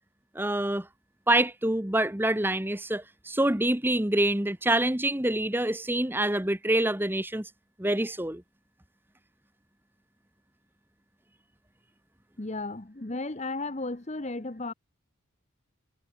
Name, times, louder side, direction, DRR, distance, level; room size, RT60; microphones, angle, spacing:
voice 1, 0.3-0.9 1.3-7.5 7.8-8.4, right 1 dB, 10° right, 1.1 m, -26 dB
voice 2, 12.4-14.7, left 2 dB, 30° left, 1.0 m, -34 dB
head